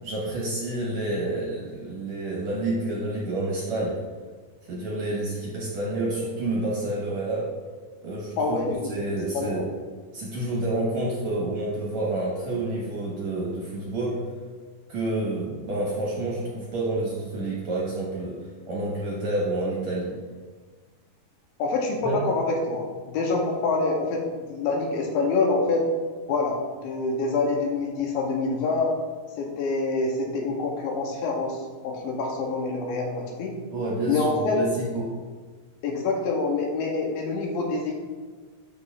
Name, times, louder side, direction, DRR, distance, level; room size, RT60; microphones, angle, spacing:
voice 1, 0.0-4.0 4.7-7.5 8.0-8.6 8.9-9.7 10.1-14.2 14.9-18.4 18.7-20.2 22.0-22.3 33.7-35.1, right 2 dB, 60° right, -5 dB, 2.0 m, -29 dB
voice 2, 8.4-8.9 9.3-9.7 21.6-25.9 26.3-29.0 29.4-31.6 31.8-33.6 34.1-34.6 35.8-37.9, left 3 dB, 75° left, 0 dB, 2.4 m, -26 dB
13.0 x 4.8 x 2.4 m, 1.5 s
omnidirectional pair, 4.5 m